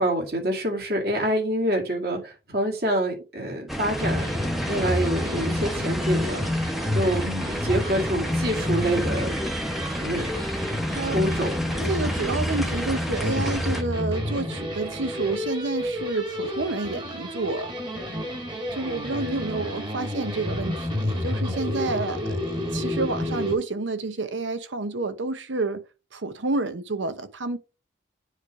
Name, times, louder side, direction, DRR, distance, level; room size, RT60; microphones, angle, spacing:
voice 1, 0.0-4.3 4.7-6.4 6.9-9.4 10.0-10.3 11.1-11.5, right 1 dB, 55° right, 2.2 m, -26 dB
sound 1, 3.7-13.8, equal, ahead, 0.8 m, -31 dB
sound 2, 4.0-23.5, left 1 dB, 25° right, 1.5 m, -29 dB
voice 2, 10.9-11.2 11.8-17.7 18.7-25.8 26.1-27.6, right 3 dB, 80° right, 0.9 m, -29 dB
9.6 x 3.2 x 4.8 m
head